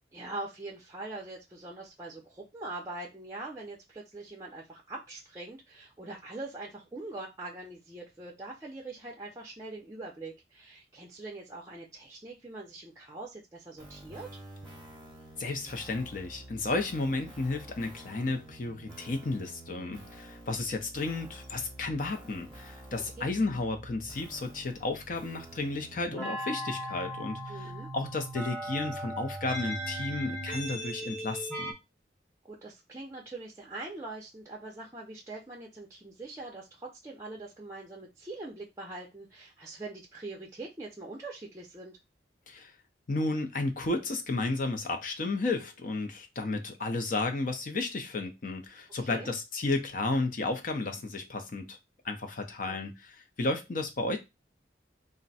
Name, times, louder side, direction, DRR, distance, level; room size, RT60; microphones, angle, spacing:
voice 1, 0.1-14.3 23.2-23.3 27.5-27.9 32.5-42.0 49.1-49.3 52.7-52.8, right 2 dB, 15° right, 0.5 m, -43 dB
sound 1, 13.8-31.7, equal, 5° left, 1.0 m, -42 dB
voice 2, 15.4-31.7 42.5-42.7 43.1-51.8 52.0-54.2, left 2 dB, 50° left, 0.6 m, -33 dB
2.5 x 2.1 x 4.0 m
head